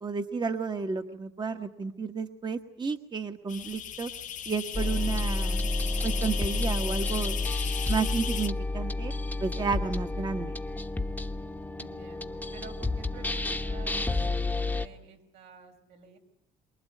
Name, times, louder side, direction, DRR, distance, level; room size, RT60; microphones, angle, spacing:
voice 1, 0.0-4.1 4.5-5.7 6.0-7.4 7.9-9.1 9.4-10.6, right 5 dB, 25° right, 7 dB, 1.3 m, -32 dB
sound 1, 3.5-8.5, left 9 dB, 50° left, 0.9 m, -36 dB
sound 2, 4.7-14.9, left 2 dB, 10° left, 1.1 m, -30 dB
voice 2, 11.8-16.2, right 5 dB, 80° right, 3 dB, 5.3 m, -50 dB
24.5 x 22.0 x 9.2 m, 0.78 s
cardioid pair, 110°, 17 cm